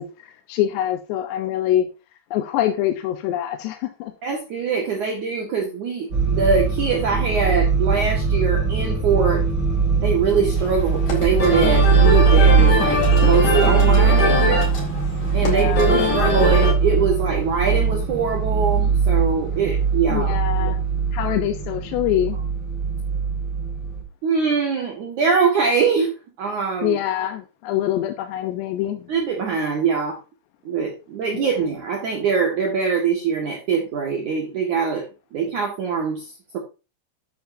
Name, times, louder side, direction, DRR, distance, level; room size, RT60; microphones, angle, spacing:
voice 1, 0.0-1.9 2.3-4.1 14.1-14.8 15.4-16.1 20.1-20.8 21.1-22.4 26.8-29.1 31.3-31.5, left 12 dB, 80° left, 7 dB, 3.0 m, -25 dB
voice 2, 4.2-9.4 10.0-14.6 15.3-20.3 24.2-27.0 29.1-30.2 30.6-35.1 35.3-36.6, right 5 dB, 55° right, 1 dB, 2.7 m, -23 dB
sound 1, 6.1-24.0, right 5 dB, 30° right, 5.7 m, -20 dB
sound 2, 10.6-16.7, left 3 dB, 40° left, 5.0 m, -23 dB
12.0 x 9.4 x 2.7 m, 0.30 s
omnidirectional pair, 5.0 m